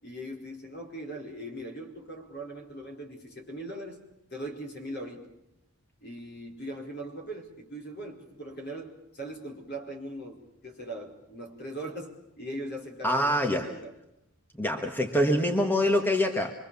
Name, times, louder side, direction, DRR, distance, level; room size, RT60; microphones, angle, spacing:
voice 1, 0.0-4.0 4.3-5.3 6.0-13.9, right 1 dB, 50° left, 2 dB, 4.8 m, -40 dB
voice 2, 13.0-13.7 14.6-16.5, left 1 dB, 10° left, 4 dB, 1.6 m, -25 dB
26.5 x 23.5 x 7.1 m, 0.86 s
head